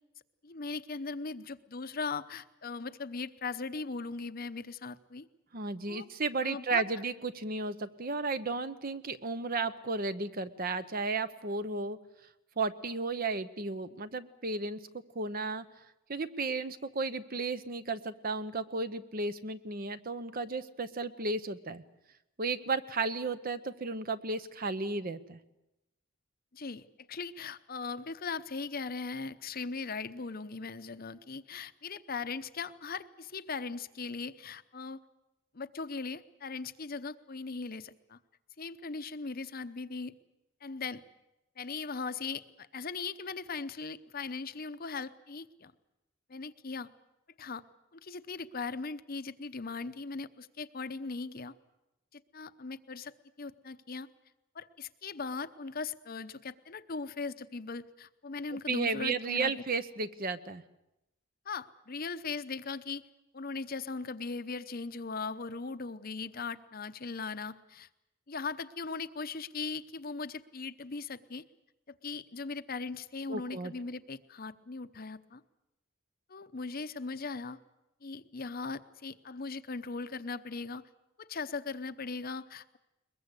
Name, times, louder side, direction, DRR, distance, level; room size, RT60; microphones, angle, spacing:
voice 1, 0.4-5.3 5.9-6.1 6.4-6.8 26.5-35.0 35.5-38.2 38.6-40.1 40.6-41.0 41.6-45.7 46.3-46.9 47.4-47.6 47.9-51.5 52.1-53.1 53.4-54.1 54.5-59.5 61.5-63.0 63.3-67.9 68.3-71.4 71.9-75.4 76.3-77.6 78.0-80.8 81.2-82.8, left 4 dB, 45° left, 12 dB, 0.8 m, -39 dB
voice 2, 5.5-12.0 12.6-14.8 15.1-15.6 16.1-21.8 22.4-25.4 58.7-60.6 73.3-73.7, right 3 dB, 40° right, 12 dB, 0.8 m, -34 dB
21.5 x 21.5 x 8.2 m, 0.92 s
head